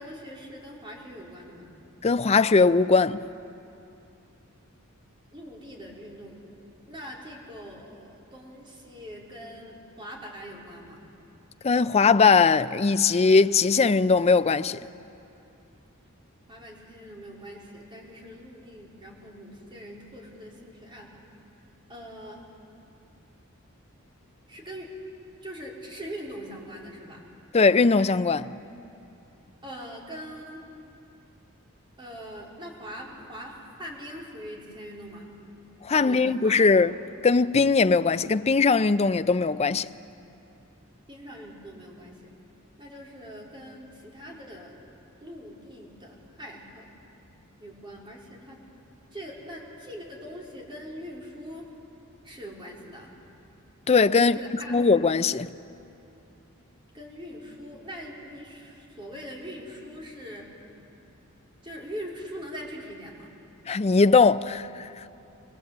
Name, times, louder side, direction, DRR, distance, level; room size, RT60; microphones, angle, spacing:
voice 1, 0.0-1.7 5.3-6.4 6.9-11.0 16.5-21.1 21.9-22.4 24.5-24.9 25.4-27.2 29.6-30.7 32.0-35.3 35.9-36.9 41.1-42.3 42.8-44.7 45.2-46.8 47.6-48.6 49.1-51.7 52.2-53.1 54.2-54.7 56.9-60.5 61.6-63.3, equal, 25° right, 4.1 m, -42 dB
voice 2, 2.0-3.2 11.6-14.8 27.5-28.5 35.8-36.9 37.2-39.9 53.9-54.4 54.7-55.5 63.7-65.1, left 4 dB, 30° left, 0.4 m, -20 dB
23.5 x 21.5 x 8.0 m
head